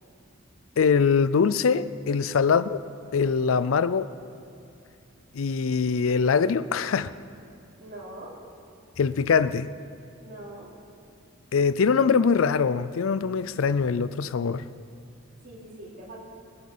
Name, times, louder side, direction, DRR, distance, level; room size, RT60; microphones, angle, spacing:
voice 1, 0.8-2.8 3.1-4.1 5.3-7.1 9.0-9.7 11.5-14.6, left 5 dB, 80° left, 15 dB, 0.4 m, -23 dB
voice 2, 7.8-8.4 10.2-10.7 15.4-16.2, right 1 dB, 45° right, -7 dB, 3.3 m, -43 dB
24.0 x 8.1 x 5.5 m, 2.6 s
head